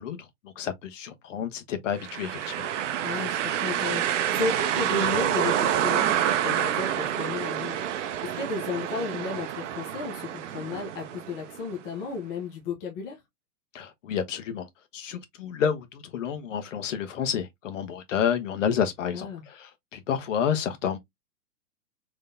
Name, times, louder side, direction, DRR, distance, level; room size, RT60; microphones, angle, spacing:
voice 1, 0.0-2.7 13.7-14.7 14.9-21.0, left 8 dB, 50° left, 1.2 m, -30 dB
sound 1, 2.0-11.8, right 10 dB, 50° right, 0.7 m, -28 dB
voice 2, 3.0-8.1 8.4-13.2 19.1-19.4, left 4 dB, 15° left, 0.4 m, -33 dB
3.9 x 3.2 x 2.5 m
hypercardioid pair, 135°, 47 cm